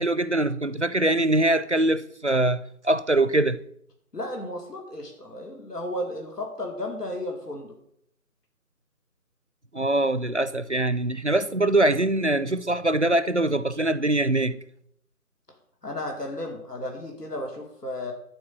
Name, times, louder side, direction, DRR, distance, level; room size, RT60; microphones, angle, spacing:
voice 1, 0.0-2.6 2.8-3.6 9.7-14.5, right 2 dB, 50° right, 0.5 m, -23 dB
voice 2, 4.1-7.7 15.8-18.1, left 1 dB, 90° left, 2.5 m, -34 dB
11.5 x 4.6 x 8.1 m
figure-of-eight pair, 175°, 46 cm